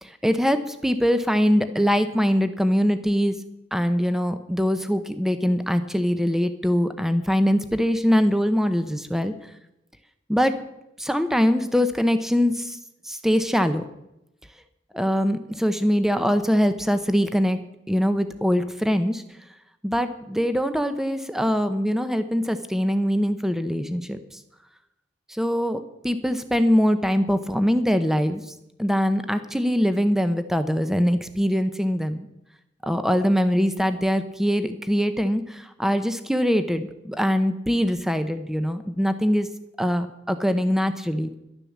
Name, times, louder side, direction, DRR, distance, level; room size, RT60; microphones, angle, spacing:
voice 1, 0.0-3.4 3.7-9.3 10.3-10.5 11.0-12.8 13.0-13.8 14.9-17.6 17.9-19.2 19.8-24.2 25.4-28.4 28.8-32.3 32.8-39.5 39.8-41.3, equal, ahead, 10 dB, 0.8 m, -22 dB
11.5 x 10.5 x 7.2 m, 0.87 s
head